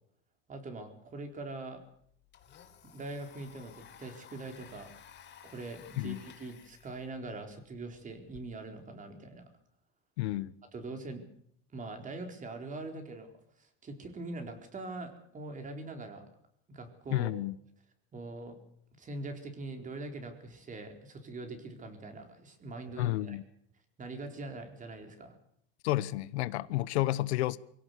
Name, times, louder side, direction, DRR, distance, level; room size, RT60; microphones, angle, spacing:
voice 1, 0.5-1.8 2.8-4.9 5.4-9.5 10.7-11.2 11.7-13.3 13.6-16.2 16.7-17.4 18.1-18.6 19.0-23.4 24.0-25.4, right 2 dB, 25° right, 4.2 m, -43 dB
Domestic sounds home sounds, 1.4-1.5 1.8-8.4, left 9 dB, 35° left, 4.2 m, -56 dB
voice 2, 10.2-10.6 17.1-17.5 23.0-23.4 25.8-27.6, left 16 dB, 90° left, 1.0 m, -31 dB
24.0 x 16.5 x 8.3 m
supercardioid pair, 130°, 32 cm